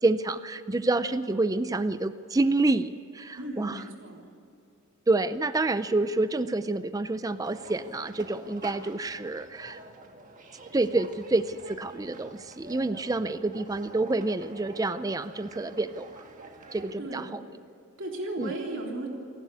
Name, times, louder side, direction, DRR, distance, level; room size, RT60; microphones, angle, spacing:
voice 1, 0.0-3.8 5.1-9.8 10.7-16.2 16.7-17.4 18.4-18.5, right 2 dB, 15° right, 13 dB, 0.4 m, -28 dB
voice 2, 3.4-4.2 17.0-17.3 18.0-19.1, right 2 dB, 55° right, 0 dB, 3.5 m, -35 dB
sound 1, 7.4-16.9, right 2 dB, 35° right, 1.6 m, -47 dB
27.5 x 11.5 x 8.3 m, 2.6 s
head